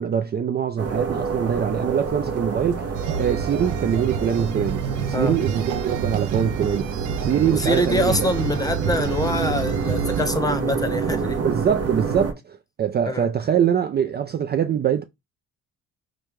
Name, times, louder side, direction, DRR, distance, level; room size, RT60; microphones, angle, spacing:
voice 1, 0.0-2.9 3.2-8.3 11.4-15.0, right 8 dB, 35° right, 0.4 m, -23 dB
sound 1, 0.8-12.3, right 5 dB, 50° right, 0.9 m, -28 dB
sound 2, 2.9-10.3, right 7 dB, 80° right, 0.6 m, -29 dB
voice 2, 7.5-11.4 13.0-13.3, left 1 dB, 10° left, 0.8 m, -25 dB
5.1 x 2.2 x 3.1 m
cardioid pair, 90°, 30 cm